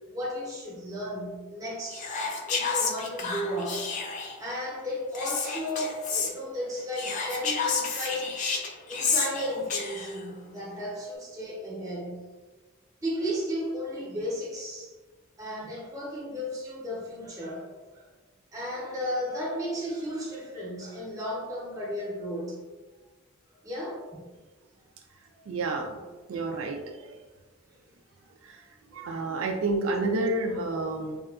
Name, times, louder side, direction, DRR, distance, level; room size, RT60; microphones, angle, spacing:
voice 1, 0.1-2.1 2.5-4.0 4.4-8.4 8.9-12.3 13.0-14.9 15.4-18.1 18.5-22.6 23.6-24.3 25.3-25.4 26.3-26.6, equal, 15° right, -5 dB, 0.7 m, -34 dB
Whispering, 1.9-4.4 5.1-6.3 6.9-10.2, left 5 dB, 40° left, 0.3 m, -30 dB
voice 2, 25.5-26.0 26.3-27.2 28.4-28.6 28.9-31.2, right 2 dB, 90° right, 2 dB, 0.3 m, -30 dB
2.8 x 2.3 x 2.3 m, 1.3 s
head